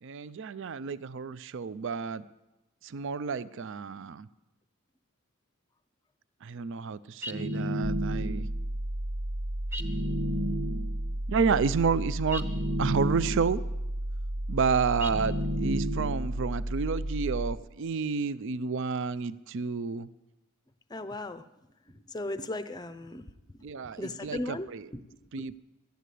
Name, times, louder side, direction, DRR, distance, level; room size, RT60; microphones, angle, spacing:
voice 1, 0.0-2.2 2.8-4.3 6.4-8.5 11.3-12.5 12.8-13.6 14.5-20.1 23.6-24.9 25.3-25.6, right 5 dB, 55° right, 17 dB, 0.4 m, -30 dB
sound 1, 7.2-8.6 9.7-11.1 12.3-13.7 15.0-16.4, equal, 10° right, 0.8 m, -32 dB
sound 2, 7.8-17.6, right 1 dB, 40° right, 0.8 m, -33 dB
voice 2, 20.9-21.4 21.9-23.3 24.0-24.7 24.9-25.6, left 2 dB, 20° left, 11 dB, 0.5 m, -37 dB
12.5 x 9.3 x 8.3 m, 0.97 s
head